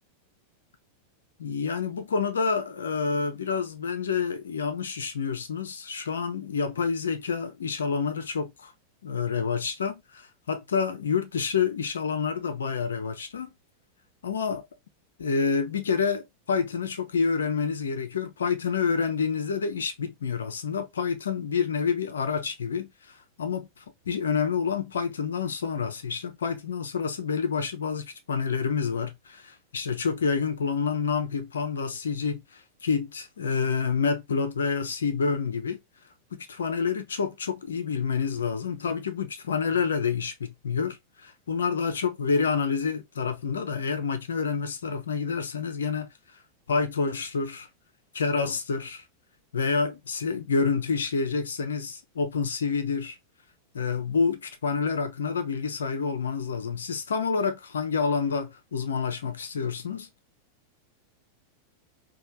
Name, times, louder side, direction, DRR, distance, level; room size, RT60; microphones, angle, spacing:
voice 1, 1.4-8.7 9.0-13.5 14.2-14.6 15.2-23.7 24.1-35.8 36.3-46.1 46.7-47.7 48.1-49.0 49.5-53.2 53.7-60.1, left 5 dB, 70° left, 0.6 m, -28 dB
3.2 x 2.3 x 2.7 m
figure-of-eight pair, 90°, 0 cm